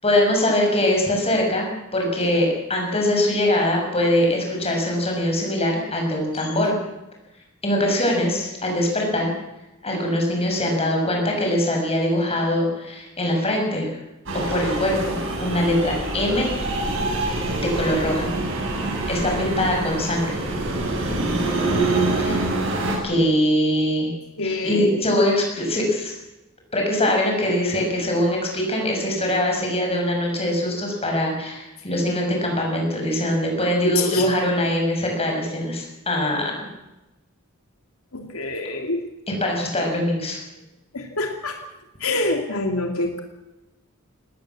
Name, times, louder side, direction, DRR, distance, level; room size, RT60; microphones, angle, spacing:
voice 1, 0.0-6.7 7.6-9.3 9.8-13.9 14.3-16.8 17.6-18.3 19.1-20.4 22.2-22.4 23.0-24.1 24.4-26.2 26.7-36.7 39.4-40.4, left 1 dB, 30° left, 1 dB, 7.1 m, -22 dB
sound 1, 14.3-23.0, right 2 dB, 65° right, 7.4 m, -25 dB
voice 2, 24.4-24.9 34.0-34.3 38.1-39.1 40.9-41.6 42.0-43.2, left 2 dB, 90° left, 4 dB, 2.7 m, -26 dB
20.0 x 18.0 x 7.5 m, 0.97 s
head